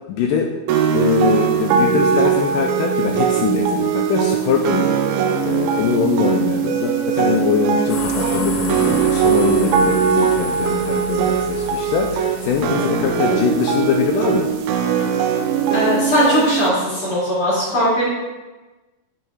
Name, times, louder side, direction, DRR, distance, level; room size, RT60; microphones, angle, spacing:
voice 1, 0.1-0.5 0.9-14.5, left 6 dB, 85° left, 2 dB, 1.9 m, -22 dB
sound 1, 0.7-16.7, right 7 dB, 85° right, 2.5 m, -20 dB
sound 2, 7.9-14.7, left 4 dB, 70° left, 2.3 m, -32 dB
voice 2, 15.7-18.0, equal, 45° left, -10 dB, 3.5 m, -19 dB
7.7 x 4.6 x 4.9 m, 1.2 s
omnidirectional pair, 4.3 m